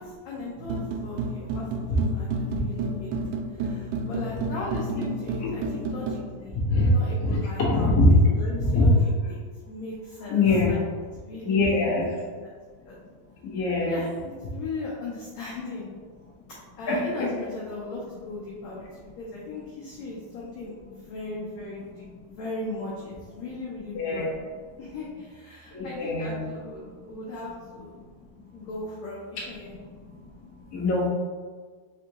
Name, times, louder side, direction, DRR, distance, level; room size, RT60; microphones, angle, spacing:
voice 1, 0.0-3.2 3.5-6.6 6.9-9.0 9.3-10.8 11.2-12.6 12.8-13.0 13.8-14.1 14.5-15.9 16.8-24.3 24.8-27.9 28.5-29.7, left 2 dB, 80° left, -4 dB, 1.6 m, -38 dB
sound 1, 0.6-6.2, right 3 dB, 85° right, 1.7 m, -31 dB
voice 2, 6.5-6.9 7.2-8.1 8.6-8.8 10.3-10.7 11.4-12.1 13.4-14.0 16.9-17.3 23.9-24.3 25.7-26.5 29.4-29.5 30.7-31.1, left 2 dB, 65° left, -7 dB, 0.9 m, -23 dB
5.2 x 3.5 x 2.9 m, 1.6 s
omnidirectional pair, 4.0 m